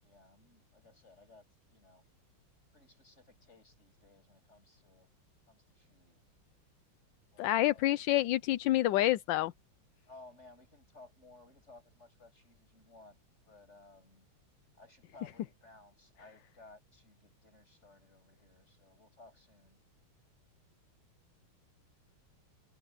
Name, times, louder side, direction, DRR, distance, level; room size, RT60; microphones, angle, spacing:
voice 1, 0.0-2.0 2.7-5.1 5.5-6.2 7.3-8.1 10.1-13.2 13.5-14.3 14.8-19.8, left 2 dB, 30° left, 8.2 m, -59 dB
voice 2, 7.4-9.5, left 15 dB, 70° left, 1.2 m, -28 dB
omnidirectional pair, 2.4 m